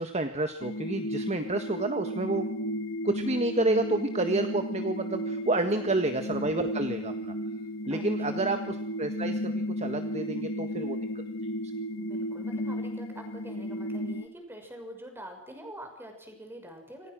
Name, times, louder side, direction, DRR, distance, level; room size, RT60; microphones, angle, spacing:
voice 1, 0.0-2.5 3.0-7.3 7.9-11.0, right 2 dB, 30° right, 7 dB, 1.6 m, -29 dB
sound 1, 0.6-14.3, equal, 65° left, 1.9 m, -34 dB
voice 2, 5.5-6.0 7.9-8.4 12.0-17.1, equal, 10° right, 4 dB, 6.3 m, -45 dB
29.0 x 26.0 x 6.3 m, 0.74 s
head